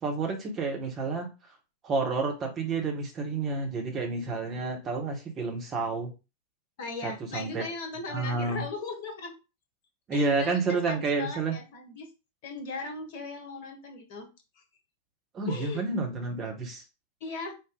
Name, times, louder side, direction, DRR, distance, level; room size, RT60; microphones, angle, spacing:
voice 1, 0.0-1.3 1.8-6.1 7.0-7.7 8.1-8.6 10.1-11.6 15.3-16.8, right 3 dB, 25° right, 2 dB, 1.3 m, -30 dB
voice 2, 6.8-9.3 10.1-12.1 12.4-14.3 14.6-14.7 15.5-15.8 17.2-17.5, left 3 dB, 50° left, 3 dB, 1.3 m, -38 dB
4.9 x 2.5 x 3.8 m, 0.28 s
figure-of-eight pair, 90°, 0 cm